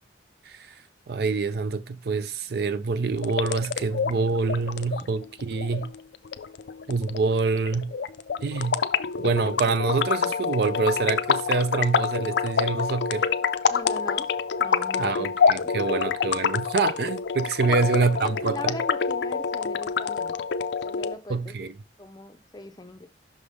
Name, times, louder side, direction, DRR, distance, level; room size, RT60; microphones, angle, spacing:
voice 1, 1.1-5.9 6.9-7.9 8.4-8.8 9.2-13.3 15.0-18.8 21.3-21.7, right 4 dB, 55° right, 0.4 m, -26 dB
sound 1, 3.1-21.1, left 6 dB, 70° left, 0.4 m, -27 dB
voice 2, 13.7-14.3 14.6-15.3 15.6-16.1 17.6-20.4 20.8-21.7 22.0-23.1, left 2 dB, 20° left, 0.6 m, -39 dB
5.9 x 3.3 x 5.4 m
head